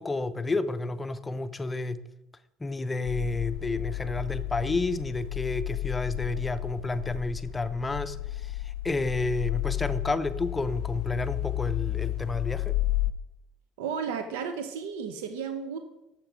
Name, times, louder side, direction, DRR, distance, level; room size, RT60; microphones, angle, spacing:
voice 1, 0.0-2.0 2.6-12.8, left 3 dB, 15° left, 12 dB, 0.5 m, -30 dB
sound 1, 3.0-13.1, left 15 dB, 80° left, 0.3 m, -32 dB
voice 2, 13.8-15.8, right 6 dB, 90° right, 8 dB, 0.6 m, -33 dB
6.5 x 6.5 x 4.9 m, 0.92 s
supercardioid pair, 95°, 0 cm